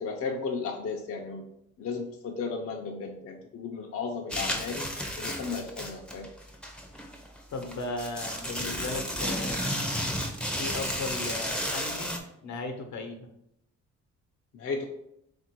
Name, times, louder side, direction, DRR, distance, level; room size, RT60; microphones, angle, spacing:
voice 1, 0.0-1.4 1.8-4.9 5.2-6.3 14.5-14.8, left 4 dB, 50° left, 1 dB, 0.6 m, -34 dB
sound 1, 4.3-12.2, equal, 5° left, 0.6 m, -32 dB
voice 2, 7.5-9.7 10.6-13.3, left 2 dB, 70° left, 5 dB, 0.9 m, -36 dB
3.5 x 2.6 x 4.4 m, 0.77 s
cardioid pair, 90°, 30 cm